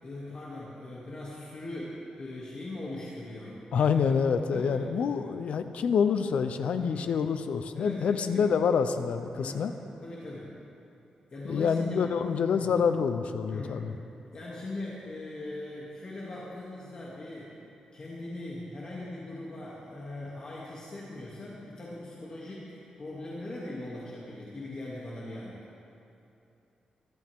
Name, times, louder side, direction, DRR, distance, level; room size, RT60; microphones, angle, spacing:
voice 1, 0.0-3.9 4.5-5.3 6.8-7.1 7.7-8.4 9.3-9.7 10.0-10.5 11.3-12.1 12.5-12.7 13.4-13.9 14.3-17.5 17.9-25.6, left 2 dB, 45° left, -7 dB, 2.7 m, -40 dB
voice 2, 3.7-9.7 11.4-14.0, left 6 dB, 75° left, 9 dB, 0.8 m, -27 dB
23.5 x 13.0 x 3.8 m, 2.8 s
cardioid pair, 105°, 2 cm